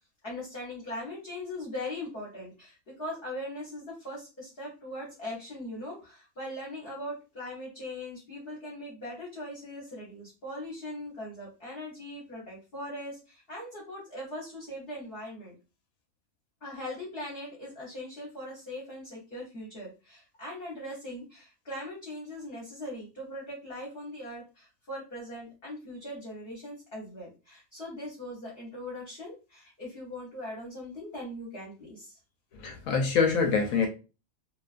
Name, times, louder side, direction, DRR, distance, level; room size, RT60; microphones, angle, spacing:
voice 1, 0.2-15.5 16.6-32.1, left 1 dB, 45° left, -5 dB, 0.9 m, -40 dB
voice 2, 32.6-33.9, left 5 dB, 70° left, 4 dB, 1.0 m, -25 dB
2.5 x 2.3 x 2.3 m, 0.31 s
omnidirectional pair, 1.6 m